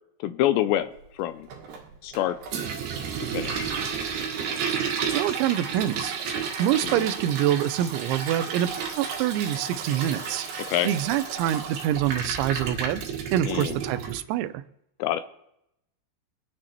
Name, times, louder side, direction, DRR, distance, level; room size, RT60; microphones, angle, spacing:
voice 1, 0.2-0.9 1.2-1.5 2.0-2.4 3.3-3.7 7.0-7.1 10.7-10.9 13.5-13.8 15.0-15.2, left 13 dB, 85° left, 12 dB, 2.6 m, -26 dB
Toilet flush, 1.5-14.2, right 6 dB, 65° right, 3.5 m, -32 dB
voice 2, 5.1-6.2 6.6-10.5 10.8-13.0 13.3-14.6, right 12 dB, 85° right, 11 dB, 3.0 m, -26 dB
24.5 x 9.8 x 3.0 m, 0.80 s
omnidirectional pair, 5.3 m